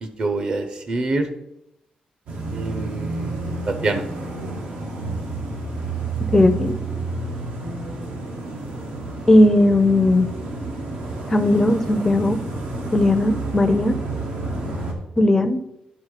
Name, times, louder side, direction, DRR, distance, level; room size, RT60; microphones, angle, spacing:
voice 1, 0.0-1.3 2.5-3.4 3.7-4.0, right 2 dB, 40° right, 8 dB, 0.8 m, -25 dB
sound 1, 2.3-14.9, right 3 dB, 85° right, 1.5 m, -30 dB
voice 2, 6.3-6.7 9.3-10.3 11.3-12.4 12.9-14.0 15.2-15.6, left 1 dB, 15° left, 9 dB, 0.5 m, -17 dB
9.6 x 3.9 x 4.9 m, 0.82 s
wide cardioid pair, 160°, 3 cm